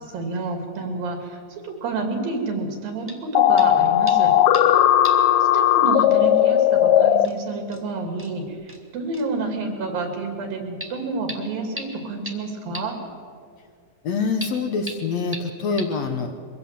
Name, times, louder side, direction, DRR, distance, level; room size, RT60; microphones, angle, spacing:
voice 1, 0.1-4.3 5.5-12.9, right 3 dB, 90° right, 4 dB, 4.5 m, -29 dB
sound 1, 3.1-3.3 3.6-3.8 4.1-4.8 5.0-5.3 5.6-5.7 6.8-6.9 7.2-7.3 7.7-7.8 8.2-8.3 8.7-8.8 9.1-9.3 10.8-10.9 11.3-11.4 11.8-11.9 12.3-12.4 12.7-12.8 14.4-14.5 14.9-15.0 15.3-15.4 15.8-15.9, equal, 5° right, 1.3 m, -35 dB
sound 2, 3.3-7.3, left 11 dB, 80° left, 1.6 m, -17 dB
voice 2, 14.0-16.6, left 4 dB, 65° left, 5 dB, 1.9 m, -26 dB
23.0 x 16.5 x 7.6 m, 2.1 s
omnidirectional pair, 4.0 m